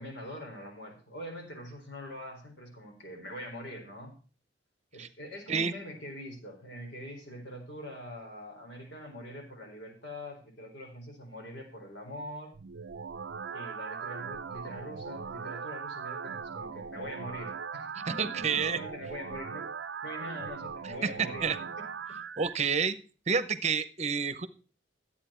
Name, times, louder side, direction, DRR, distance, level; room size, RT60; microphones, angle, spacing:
voice 1, 0.0-4.1 4.9-12.5 13.5-22.2, equal, 75° left, 1 dB, 4.3 m, -43 dB
sound 1, 12.5-22.5, right 6 dB, 75° right, 0.5 m, -39 dB
voice 2, 18.1-18.8 21.0-21.1 21.4-21.6 22.4-23.0 23.3-24.5, right 5 dB, 40° right, 13 dB, 0.8 m, -29 dB
13.0 x 8.6 x 4.4 m, 0.38 s
head